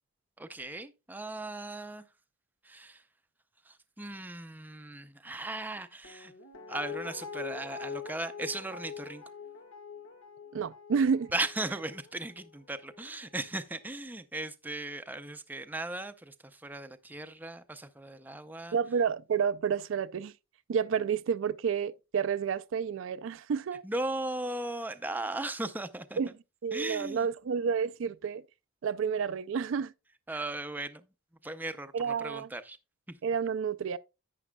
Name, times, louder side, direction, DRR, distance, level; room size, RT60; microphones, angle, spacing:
voice 1, 0.4-2.0 2.6-3.0 3.7-6.3 6.7-9.2 11.3-18.8 23.8-26.2 26.7-27.3 30.3-31.0 31.4-32.8 33.1-33.2, right 2 dB, 10° right, 0.5 m, -37 dB
Guitar, 6.0-13.1 13.4-13.5, left 6 dB, 90° left, 1.7 m, -44 dB
voice 2, 10.5-11.3 18.7-20.3 20.7-23.8 26.2-26.3 26.6-28.4 28.8-29.9 31.9-32.5 33.2-34.0, right 6 dB, 70° right, 0.4 m, -30 dB
11.0 x 8.3 x 2.2 m
head